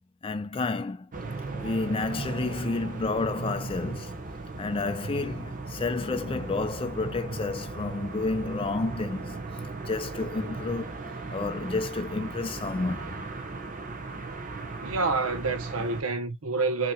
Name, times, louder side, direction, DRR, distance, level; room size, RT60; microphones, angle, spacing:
voice 1, 0.2-1.1 1.5-4.1 4.6-9.4 9.9-13.2, left 3 dB, 25° left, 0.4 m, -30 dB
sound 1, 1.1-16.0, right 3 dB, 35° right, 1.0 m, -37 dB
voice 2, 14.8-16.9, right 3 dB, 70° right, 0.8 m, -28 dB
5.7 x 2.9 x 2.2 m
head